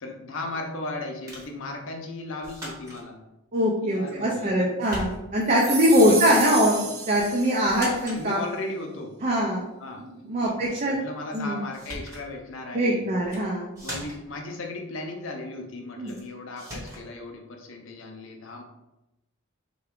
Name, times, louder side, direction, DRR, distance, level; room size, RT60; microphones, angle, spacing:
voice 1, 0.0-3.2 3.8-4.8 5.6-6.7 8.1-9.1 9.8-10.0 10.3-13.0 13.8-18.6, left 2 dB, 65° left, 3 dB, 0.6 m, -36 dB
sound 1, 1.3-1.6 2.4-3.0 4.1-4.5 4.8-5.5 7.1-7.4 7.7-8.2 11.3-11.4 11.7-12.3 13.2-13.5 13.8-14.4 16.1-16.2 16.6-17.1, equal, 15° right, 1.0 m, -39 dB
voice 2, 3.5-6.8 7.1-8.4 9.2-9.6 10.0-11.0 11.3-11.6 12.7-13.7 16.0-16.1, equal, 35° right, -3 dB, 0.5 m, -22 dB
sound 2, 5.5-8.0, right 4 dB, 85° right, 0.7 m, -32 dB
3.4 x 2.2 x 3.6 m, 0.95 s
head